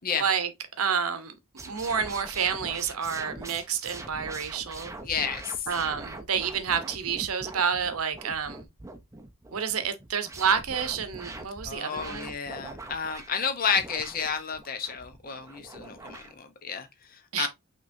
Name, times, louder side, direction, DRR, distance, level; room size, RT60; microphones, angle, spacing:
voice 1, 0.1-0.5 0.8-1.3 1.7-4.9 5.7-8.6 9.5-12.3 17.3-17.5, right 7 dB, 80° right, 0.7 m, -29 dB
sound 1, 1.6-16.4, right 2 dB, 15° right, 0.5 m, -43 dB
voice 2, 5.0-5.7 11.6-17.5, left 6 dB, 40° left, 0.7 m, -31 dB
5.8 x 3.0 x 2.6 m
head